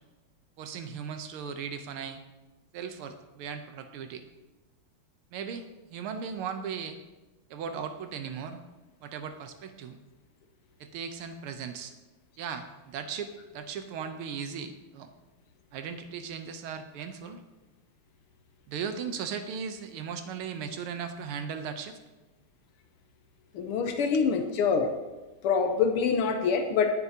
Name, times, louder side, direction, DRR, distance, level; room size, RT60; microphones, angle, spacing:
voice 1, 0.6-2.2 2.7-4.2 5.3-5.6 5.9-7.0 7.5-8.6 9.0-10.0 10.8-11.9 12.4-15.1 15.7-17.4 18.7-22.0 23.9-24.2, right 6 dB, 85° right, 8 dB, 1.7 m, -37 dB
voice 2, 23.5-24.9 25.4-26.9, left 5 dB, 90° left, 5 dB, 1.7 m, -25 dB
20.0 x 6.9 x 2.8 m, 1.1 s
omnidirectional pair, 2.4 m